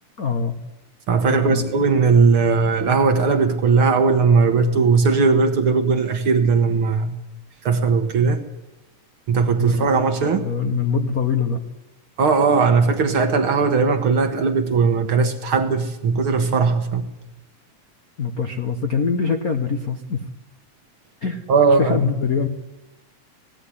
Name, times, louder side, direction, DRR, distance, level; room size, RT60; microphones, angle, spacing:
voice 1, 0.2-0.5 1.3-1.6 9.6-9.9 10.2-11.6 18.2-20.2 21.2-21.4 21.8-22.5, left 5 dB, 90° left, 5 dB, 0.7 m, -23 dB
voice 2, 1.1-7.1 7.6-8.4 9.3-10.4 12.2-17.1 21.5-22.0, right 4 dB, 55° right, 8 dB, 1.7 m, -18 dB
17.5 x 16.0 x 10.0 m, 0.99 s
omnidirectional pair, 3.6 m